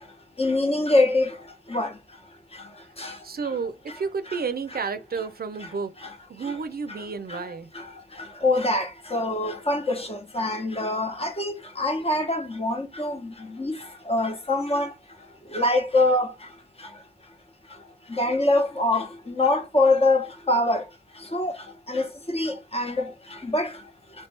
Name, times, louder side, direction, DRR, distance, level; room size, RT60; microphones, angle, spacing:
voice 1, 0.4-1.3 1.7-1.9 3.0-3.1 8.4-13.2 13.6-13.7 14.1-14.9 15.5-16.3 18.2-19.0 19.4-20.8 21.3-21.5 21.9-23.0 23.5-23.7, left 2 dB, 35° left, 1.1 m, -23 dB
voice 2, 3.2-5.9 6.3-7.7, right 5 dB, 60° right, 0.5 m, -31 dB
3.1 x 2.9 x 3.2 m
cardioid pair, 45°, 18 cm